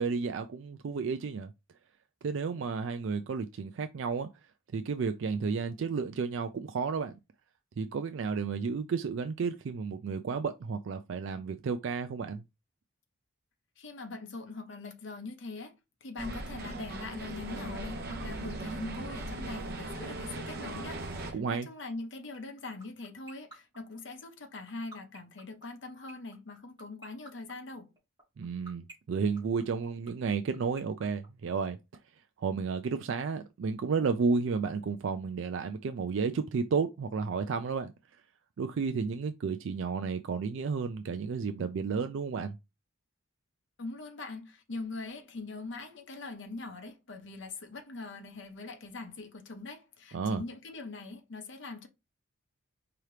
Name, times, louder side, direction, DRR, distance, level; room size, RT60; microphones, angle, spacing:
voice 1, 0.0-1.5 2.2-4.3 4.7-7.2 7.8-12.4 21.3-21.7 28.4-28.8 29.1-31.8 32.4-37.9 38.6-42.6 50.1-50.4, right 5 dB, 65° right, 0.3 m, -32 dB
voice 2, 13.8-27.9 43.8-51.9, left 3 dB, 55° left, 0.8 m, -42 dB
sound 1, 16.2-21.3, right 2 dB, 50° right, 0.8 m, -38 dB
sound 2, 22.3-32.0, right 2 dB, 20° right, 1.9 m, -49 dB
4.8 x 2.9 x 3.2 m
head